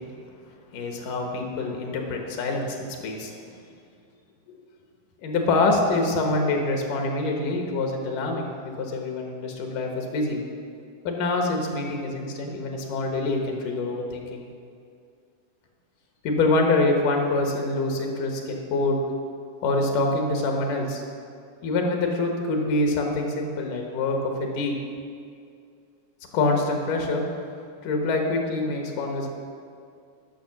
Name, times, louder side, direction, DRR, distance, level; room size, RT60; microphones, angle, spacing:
voice 1, 0.7-3.3 5.2-10.4 11.0-14.4 16.2-19.0 19.6-21.0 21.6-24.8 26.3-27.2 27.8-29.3, left 2 dB, 80° left, 2 dB, 2.7 m, -25 dB
11.5 x 6.3 x 5.9 m, 2.3 s
omnidirectional pair, 3.7 m